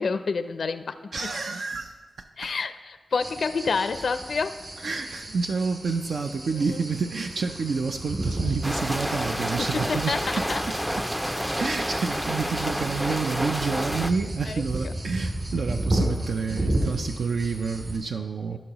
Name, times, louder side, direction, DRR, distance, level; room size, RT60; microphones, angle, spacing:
voice 1, 0.0-1.0 2.4-4.6 6.5-6.8 9.7-10.6 14.5-14.9 18.5-18.6, left 4 dB, 70° left, 11 dB, 0.4 m, -29 dB
voice 2, 1.1-2.0 4.8-10.2 11.6-18.6, right 5 dB, 75° right, 5 dB, 0.4 m, -29 dB
sound 1, 3.2-18.0, right 1 dB, 45° right, 2.4 m, -33 dB
sound 2, 8.6-14.1, equal, 5° right, 0.4 m, -29 dB
15.0 x 5.4 x 2.9 m, 1.4 s
cardioid pair, 70°, 0 cm